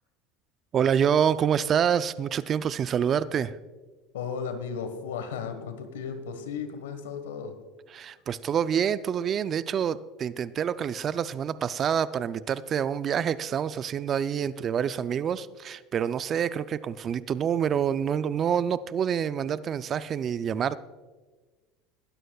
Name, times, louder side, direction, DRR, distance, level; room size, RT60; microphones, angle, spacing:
voice 1, 0.7-3.6 7.9-20.8, right 8 dB, 40° right, 15 dB, 0.5 m, -27 dB
voice 2, 4.1-7.6, left 6 dB, 90° left, 9 dB, 1.4 m, -35 dB
20.5 x 12.5 x 2.4 m, 1.3 s
supercardioid pair, 95°, 0 cm